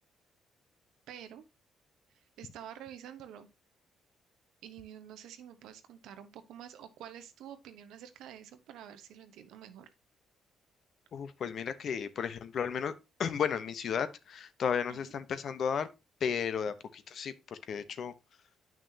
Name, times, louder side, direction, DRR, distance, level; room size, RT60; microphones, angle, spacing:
voice 1, 1.1-1.4 2.4-3.5 4.6-9.9 14.9-15.1, right 10 dB, 90° right, 0.9 m, -48 dB
voice 2, 11.1-12.9 13.2-15.9 16.2-18.1, left 7 dB, 60° left, 0.8 m, -34 dB
8.9 x 6.0 x 2.8 m
cardioid pair, 90°, 0 cm